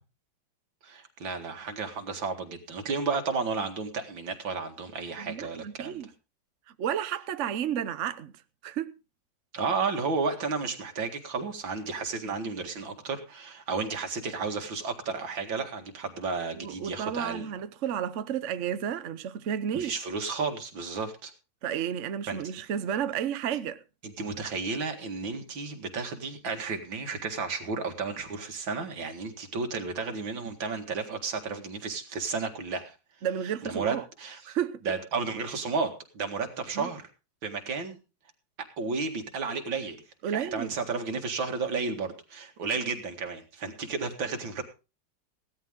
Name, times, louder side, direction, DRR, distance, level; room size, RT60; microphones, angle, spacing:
voice 1, 0.8-6.0 9.5-17.5 19.7-21.3 22.3-22.4 24.0-33.0 33.6-34.4 34.8-37.1 37.4-38.0 38.8-40.0 40.3-44.6, right 4 dB, 80° right, 2.7 m, -32 dB
voice 2, 5.2-6.1 6.8-8.3 8.6-8.9 16.5-19.9 21.6-23.8 33.2-34.0 34.4-34.8 36.7-36.9 40.2-40.8, right 9 dB, 55° right, 0.9 m, -32 dB
16.5 x 13.0 x 3.7 m
omnidirectional pair, 2.1 m